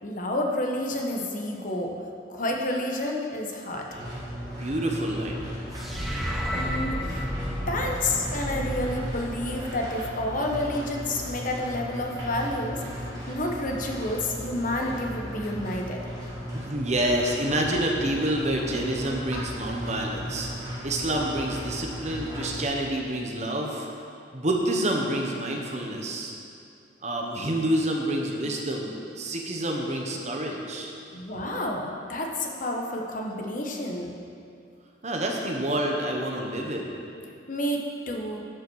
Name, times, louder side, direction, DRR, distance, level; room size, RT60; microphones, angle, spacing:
voice 1, 0.0-2.0 2.3-3.9 6.5-7.2 7.7-16.0 31.1-34.1 37.5-38.4, left 1 dB, 45° left, 1 dB, 1.1 m, -30 dB
sound 1, 3.9-22.6, equal, 20° right, 2.5 m, -36 dB
voice 2, 4.6-5.4 7.0-7.2 16.5-23.9 24.3-26.3 27.0-30.9 35.0-36.9, right 1 dB, 40° right, 0 dB, 1.1 m, -28 dB
sound 2, 5.7-10.1, equal, ahead, 0.8 m, -32 dB
11.0 x 5.9 x 6.3 m, 2.5 s
head